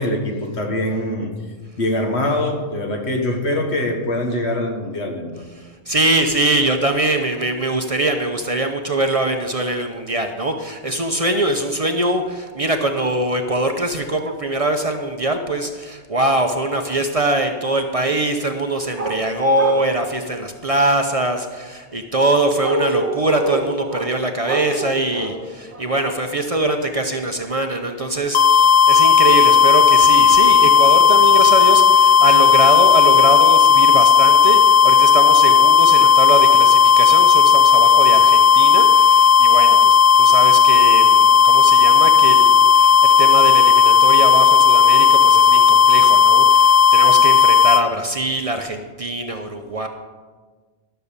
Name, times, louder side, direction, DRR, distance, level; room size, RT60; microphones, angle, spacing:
voice 1, 0.0-1.3 1.8-5.5, left 1 dB, 75° left, 3 dB, 1.7 m, -23 dB
voice 2, 5.5-49.9, right 2 dB, 35° right, 5 dB, 0.7 m, -22 dB
sound 1, 18.9-19.2 19.5-19.9 22.6-24.1 24.4-25.3 25.7-25.8, right 2 dB, 90° right, 1.8 m, -26 dB
sound 2, 28.3-47.8, left 7 dB, 55° left, 0.4 m, -12 dB
12.5 x 6.9 x 6.7 m, 1.4 s
omnidirectional pair, 1.1 m